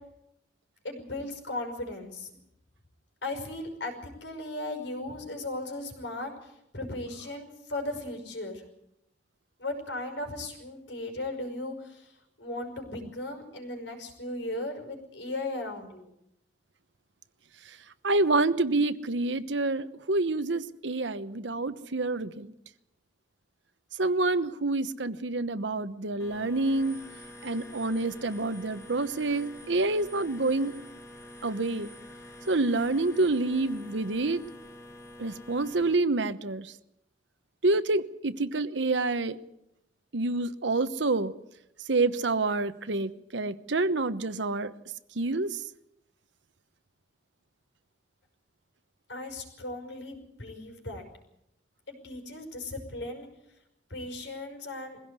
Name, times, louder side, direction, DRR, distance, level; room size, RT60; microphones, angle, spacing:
voice 1, 0.8-2.3 3.2-8.6 9.6-16.1 49.1-51.0 51.9-53.3 53.9-55.0, left 2 dB, 80° left, 4 dB, 5.5 m, -37 dB
voice 2, 18.0-22.5 24.0-27.0 27.4-30.7 31.4-31.9 32.5-34.4 35.2-36.7 37.6-39.4 40.1-41.3 41.9-44.7 45.1-45.6, right 2 dB, 75° right, 12 dB, 1.0 m, -27 dB
sound 1, 26.2-36.0, left 1 dB, 15° left, 2.1 m, -47 dB
22.5 x 16.5 x 8.2 m, 0.81 s
head